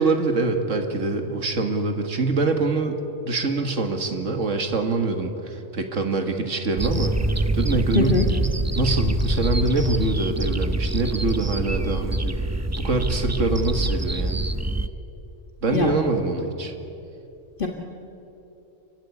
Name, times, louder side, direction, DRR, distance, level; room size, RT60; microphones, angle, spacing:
voice 1, 0.0-3.0 3.2-8.2 8.8-12.4 12.8-14.4 15.6-16.7, right 3 dB, 80° right, 5 dB, 2.1 m, -24 dB
sound 1, 6.8-14.9, right 1 dB, 15° right, 0.6 m, -25 dB
voice 2, 7.9-8.3 15.7-15.9 17.6-17.7, left 4 dB, 45° left, 1 dB, 1.7 m, -21 dB
27.0 x 15.5 x 9.8 m, 2.9 s
omnidirectional pair, 1.3 m